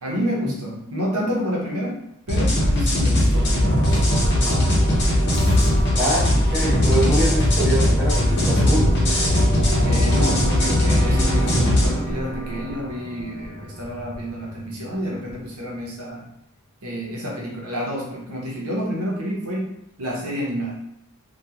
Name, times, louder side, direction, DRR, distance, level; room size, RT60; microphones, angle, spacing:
voice 1, 0.0-1.9 2.3-4.0 4.4-4.9 9.8-16.3 16.8-19.7 20.0-20.7, equal, 80° right, -3 dB, 0.8 m, -29 dB
voice 2, 0.5-1.0 6.0-9.0, right 1 dB, 5° right, -9 dB, 0.9 m, -24 dB
sound 1, 2.3-11.9, left 1 dB, 50° left, 0.7 m, -19 dB
sound 2, 2.8-13.8, right 2 dB, 50° right, 1.0 m, -30 dB
sound 3, 5.3-15.9, left 1 dB, 25° left, 0.3 m, -31 dB
2.9 x 2.3 x 2.4 m, 0.78 s
head